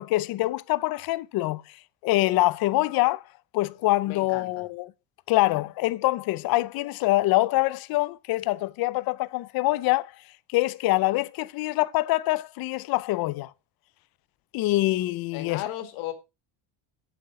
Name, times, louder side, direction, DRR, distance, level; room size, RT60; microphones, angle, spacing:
voice 1, 0.0-1.6 2.0-3.2 3.5-4.9 5.3-10.1 10.5-13.5 14.5-15.6, left 18 dB, 50° left, 0.5 m, -25 dB
voice 2, 4.1-4.7 15.3-16.1, left 13 dB, 70° left, 2.1 m, -35 dB
7.9 x 7.7 x 4.9 m
cardioid pair, 180°, 49 cm